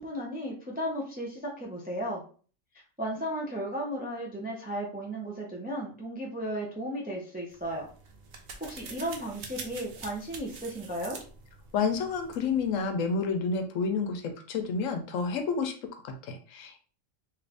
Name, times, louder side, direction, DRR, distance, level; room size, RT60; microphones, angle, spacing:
voice 1, 0.0-2.2 3.0-7.9 8.6-11.2, equal, 10° right, -1 dB, 0.4 m, -35 dB
sound 1, 7.5-12.9, right 4 dB, 60° right, 0.7 m, -46 dB
voice 2, 11.7-16.8, left 5 dB, 75° left, 6 dB, 1.0 m, -30 dB
3.0 x 2.5 x 3.3 m, 0.40 s
omnidirectional pair, 1.4 m